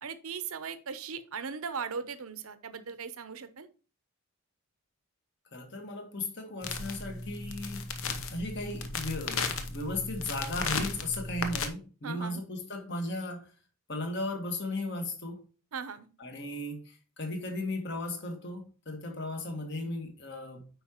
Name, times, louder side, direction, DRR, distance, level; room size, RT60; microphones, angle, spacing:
voice 1, 0.0-3.7 12.0-12.4 15.7-16.1, right 6 dB, 75° right, 0.7 m, -38 dB
voice 2, 5.5-8.0 8.3-13.5 13.9-15.4 16.2-20.7, left 2 dB, 50° left, 1.5 m, -36 dB
sound 1, 6.6-11.7, left 4 dB, 65° left, 0.8 m, -35 dB
8.7 x 4.9 x 3.0 m
head